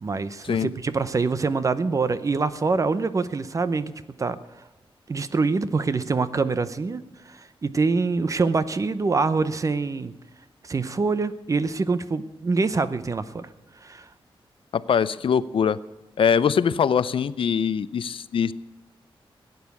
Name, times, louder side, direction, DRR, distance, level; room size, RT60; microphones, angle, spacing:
voice 1, 0.0-3.9 4.2-4.4 5.1-10.1 10.6-13.5 13.8-14.1, right 4 dB, 35° right, 14 dB, 0.7 m, -25 dB
voice 2, 14.7-15.8 16.2-18.5, left 7 dB, 65° left, 17 dB, 0.5 m, -22 dB
16.0 x 9.3 x 8.3 m, 1.1 s
wide cardioid pair, 165°, 10 cm